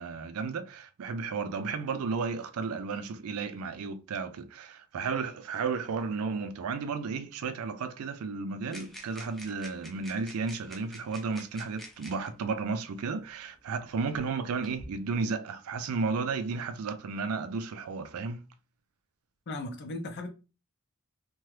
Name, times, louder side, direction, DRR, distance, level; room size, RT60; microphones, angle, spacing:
voice 1, 0.0-18.4, right 4 dB, 75° right, 0.4 m, -33 dB
sound 1, 8.7-12.3 13.3-13.4 14.1-14.9, equal, ahead, 0.6 m, -48 dB
voice 2, 19.5-20.3, left 2 dB, 50° left, 0.6 m, -36 dB
2.8 x 2.2 x 3.2 m
head